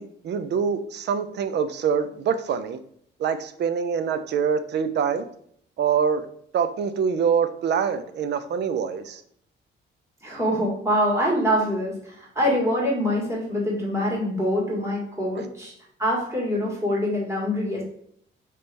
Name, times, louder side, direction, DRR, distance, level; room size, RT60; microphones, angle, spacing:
voice 1, 0.0-2.8 3.2-5.3 5.8-6.2 6.5-9.2 15.4-15.5, right 7 dB, 60° right, 11 dB, 0.5 m, -25 dB
voice 2, 10.2-15.7 16.0-17.8, equal, 15° right, -4 dB, 1.8 m, -24 dB
3.3 x 3.3 x 4.2 m, 0.66 s
cardioid pair, 90°, 20 cm